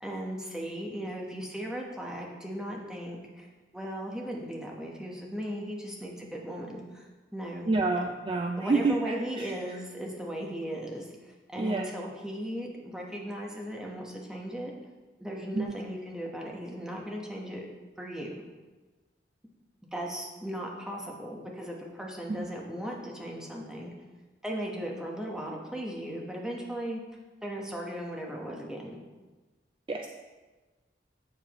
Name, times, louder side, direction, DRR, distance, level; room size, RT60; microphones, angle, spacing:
voice 1, 0.0-3.5 3.7-8.0 8.6-14.7 15.2-17.7 18.0-18.4 19.9-23.9 24.4-27.0 27.4-29.0, equal, 5° right, -2 dB, 1.0 m, -37 dB
voice 2, 7.6-9.5 11.6-11.9 15.5-15.7 22.3-22.5 29.9-30.1, right 3 dB, 30° right, 2 dB, 0.3 m, -28 dB
7.9 x 7.2 x 3.0 m, 1.2 s
head